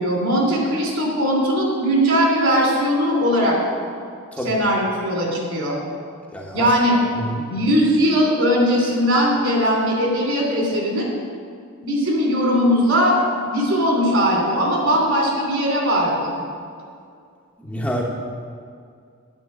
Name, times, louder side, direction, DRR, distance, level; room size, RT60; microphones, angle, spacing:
voice 1, 0.0-3.6 4.4-5.8 6.5-7.0 7.5-11.1 11.8-13.2 13.5-16.3, equal, 60° right, -1 dB, 2.9 m, -19 dB
voice 2, 6.3-6.6 7.3-7.5 17.7-18.0, equal, 5° left, -2 dB, 0.9 m, -27 dB
9.4 x 5.9 x 8.3 m, 2.2 s
head